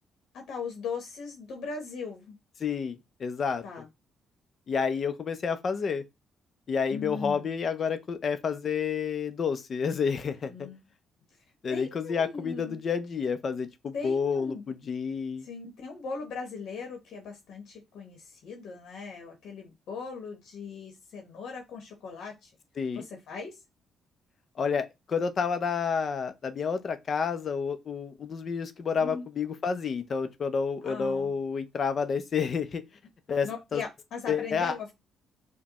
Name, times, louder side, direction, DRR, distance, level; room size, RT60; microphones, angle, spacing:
voice 1, 0.3-2.4 3.6-3.9 6.9-7.6 10.5-10.8 11.7-12.8 13.9-14.9 15.4-22.5 22.9-23.6 29.0-29.2 30.8-31.4 33.4-34.9, left 5 dB, 75° left, 0.9 m, -39 dB
voice 2, 2.6-3.6 4.7-6.0 6.7-10.7 11.6-15.5 22.8-23.0 24.6-32.8 33.3-33.8 34.3-34.7, left 6 dB, 50° left, 0.5 m, -30 dB
5.1 x 2.2 x 2.9 m
cardioid pair, 90°, 0 cm